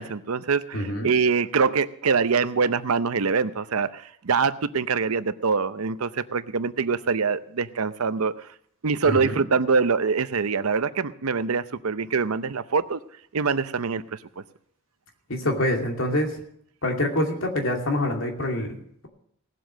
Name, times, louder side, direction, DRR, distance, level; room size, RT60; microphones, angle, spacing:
voice 1, 0.0-8.5 8.8-13.0 13.3-14.2, right 5 dB, 80° right, 13 dB, 0.7 m, -24 dB
voice 2, 0.7-1.1 9.0-9.4 15.3-16.4 16.8-19.1, left 1 dB, 65° left, 2 dB, 2.6 m, -26 dB
18.0 x 7.7 x 6.3 m, 0.66 s
head